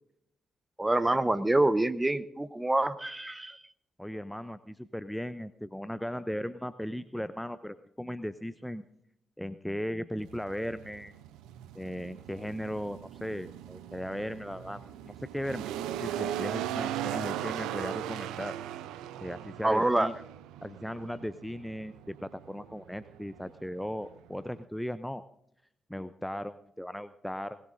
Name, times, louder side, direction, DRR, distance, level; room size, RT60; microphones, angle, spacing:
voice 1, 0.8-3.6 19.6-20.1, right 2 dB, 20° right, 14 dB, 0.9 m, -26 dB
voice 2, 4.0-8.8 9.4-11.2 11.7-15.7 16.0-18.6 19.2-20.1 20.6-25.2 25.9-27.6, equal, 5° left, 13 dB, 0.6 m, -37 dB
sound 1, 10.2-24.6, right 11 dB, 80° right, 0.5 m, -39 dB
20.5 x 18.0 x 2.6 m, 0.76 s
hypercardioid pair, 40°, 0 cm